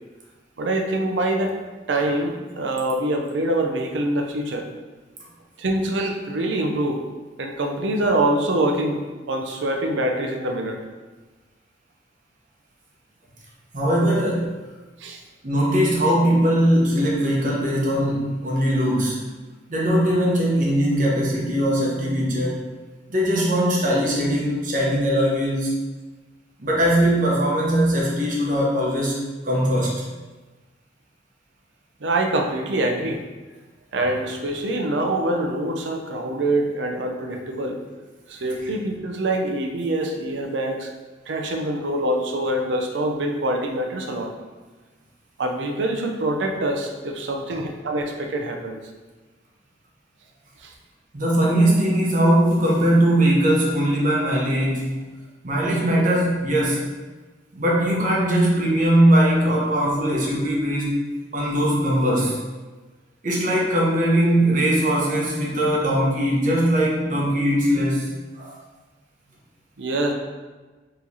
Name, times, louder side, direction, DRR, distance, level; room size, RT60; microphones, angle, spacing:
voice 1, 0.6-1.6 1.9-4.7 5.6-7.0 7.4-10.8 15.0-15.2 32.0-33.2 33.9-37.8 38.3-40.9 41.3-44.3 45.4-48.8 50.6-50.7 69.8-70.1, right 1 dB, 75° right, 2 dB, 0.5 m, -25 dB
voice 2, 13.7-14.5 15.4-19.2 19.7-22.6 23.1-25.7 26.6-29.1 29.4-30.0 51.1-54.9 55.4-56.8 57.5-61.0 61.3-62.4 63.2-68.6, equal, 45° right, -3 dB, 0.9 m, -20 dB
4.6 x 3.1 x 2.7 m, 1.2 s
head